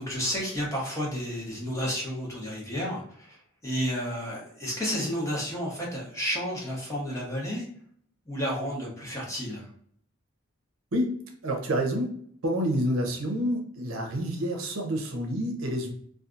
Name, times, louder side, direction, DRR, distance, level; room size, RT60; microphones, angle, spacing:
voice 1, 0.0-7.7 8.3-9.6, equal, 15° left, -4 dB, 0.8 m, -31 dB
voice 2, 10.9-12.1 12.4-15.9, equal, 75° right, 2 dB, 0.7 m, -28 dB
2.6 x 2.4 x 2.4 m, 0.63 s
head